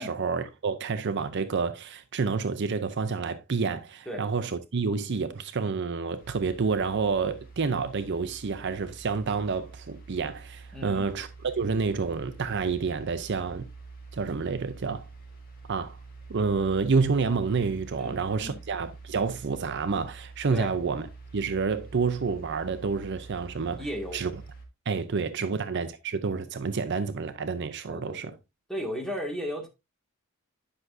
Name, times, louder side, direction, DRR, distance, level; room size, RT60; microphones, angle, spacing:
voice 1, 0.0-13.7 14.1-15.0 15.7-16.0 16.3-21.1 21.3-23.8 24.1-24.3 24.9-28.3, right 4 dB, 55° right, 0.5 m, -29 dB
sound 1, 6.2-24.6, right 4 dB, 45° left, 2.5 m, -46 dB
voice 2, 10.7-11.1 18.0-18.6 20.5-20.7 23.8-24.2 25.4-25.6 27.9-28.4 28.7-29.7, equal, ahead, 1.9 m, -35 dB
10.0 x 6.1 x 2.6 m
head